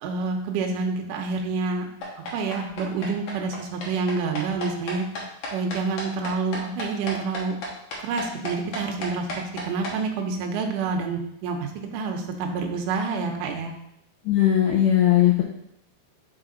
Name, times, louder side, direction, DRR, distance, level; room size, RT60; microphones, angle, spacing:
voice 1, 0.0-1.9 2.3-5.1 5.5-7.6 8.0-9.3 9.6-13.7, right 4 dB, 75° right, 3 dB, 2.0 m, -28 dB
sound 1, 2.0-9.9, left 1 dB, 70° left, 1.7 m, -33 dB
voice 2, 14.3-15.4, left 12 dB, 90° left, -1 dB, 1.8 m, -18 dB
5.6 x 4.6 x 3.8 m, 0.76 s
omnidirectional pair, 4.5 m